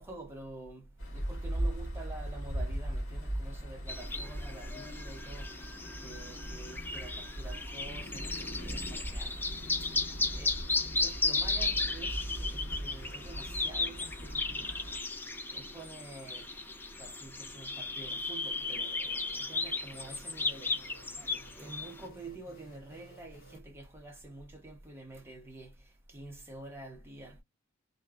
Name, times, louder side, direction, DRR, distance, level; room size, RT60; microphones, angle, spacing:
voice 1, 0.0-5.6 6.0-9.5 10.3-10.6 11.0-14.8 15.5-16.5 17.0-20.8 21.3-25.8 26.1-27.4, right 2 dB, 10° right, 0.9 m, -48 dB
sound 1, 1.0-15.0, equal, 65° left, 1.5 m, -39 dB
sound 2, 3.9-22.0, left 3 dB, 10° left, 0.4 m, -35 dB
sound 3, 18.4-23.6, right 2 dB, 45° left, 1.3 m, -57 dB
3.1 x 2.3 x 2.2 m
head